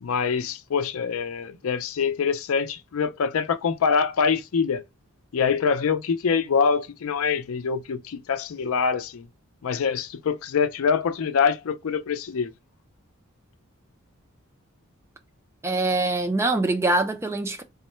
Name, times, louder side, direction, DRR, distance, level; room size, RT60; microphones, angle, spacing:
voice 1, 0.0-4.8 5.3-9.3 9.6-12.5, left 6 dB, 75° left, 0.4 m, -24 dB
voice 2, 15.6-17.6, right 2 dB, 10° right, 0.4 m, -24 dB
3.5 x 2.1 x 4.3 m
head